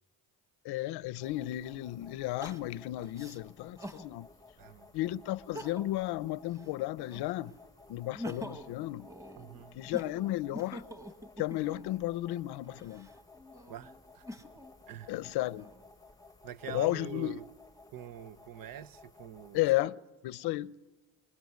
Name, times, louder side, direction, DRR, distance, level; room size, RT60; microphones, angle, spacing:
voice 1, 0.6-4.3 4.9-7.6 7.9-9.1 9.7-10.8 11.4-13.1 15.1-15.7 16.7-17.4 19.5-20.0 20.2-20.8, left 16 dB, 85° left, 0.8 m, -33 dB
sound 1, 1.2-19.8, left 3 dB, 10° left, 0.9 m, -57 dB
Crying sobbing, 2.4-4.1 4.6-4.7 5.4-6.1 6.4-7.5 7.9-11.9 12.6-14.7 15.3-16.1, equal, 10° right, 1.5 m, -46 dB
voice 2, 4.6-4.9 9.4-9.8 13.7-14.2 14.9-15.1 16.4-17.5 17.9-19.6, right 10 dB, 60° right, 1.0 m, -45 dB
27.0 x 21.5 x 9.5 m
cardioid pair, 135°, 38 cm